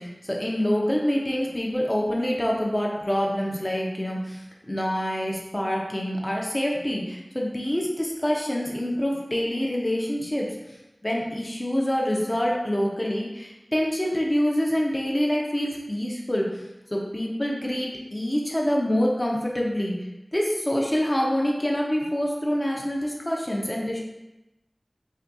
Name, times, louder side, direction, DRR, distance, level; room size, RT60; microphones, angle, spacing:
voice 1, 0.0-10.6 11.0-16.6 16.9-19.9 20.3-24.0, equal, 25° left, -2 dB, 0.7 m, -26 dB
5.3 x 2.3 x 2.6 m, 0.97 s
wide cardioid pair, 45°, 0 cm